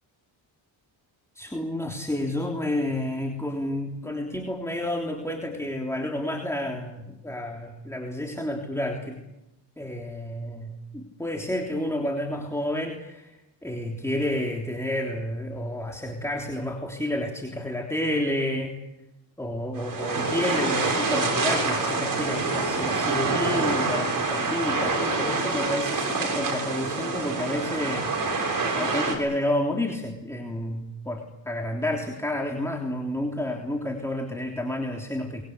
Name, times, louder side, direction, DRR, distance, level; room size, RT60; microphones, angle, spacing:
voice 1, 1.4-9.2 9.8-13.4 13.6-18.7 19.4-28.1 28.7-35.4, left 1 dB, 5° left, 2 dB, 3.3 m, -30 dB
sound 1, 19.7-29.2, right 3 dB, 45° right, 6.7 m, -26 dB
24.0 x 22.0 x 8.3 m, 0.95 s
cardioid pair, 90°, 46 cm